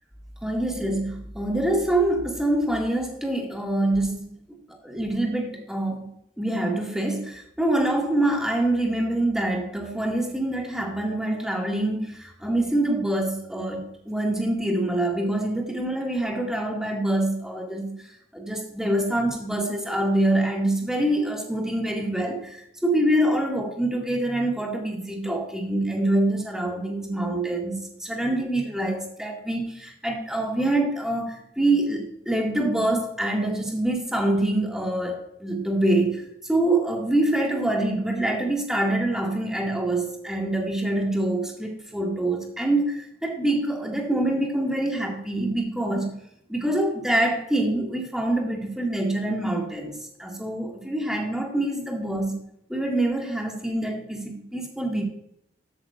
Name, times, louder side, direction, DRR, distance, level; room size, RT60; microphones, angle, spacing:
voice 1, 0.4-4.3 4.8-6.1 6.4-46.1 46.5-52.3 52.7-55.0, right 1 dB, 5° right, 0 dB, 1.9 m, -25 dB
13.0 x 9.0 x 2.4 m, 0.74 s
head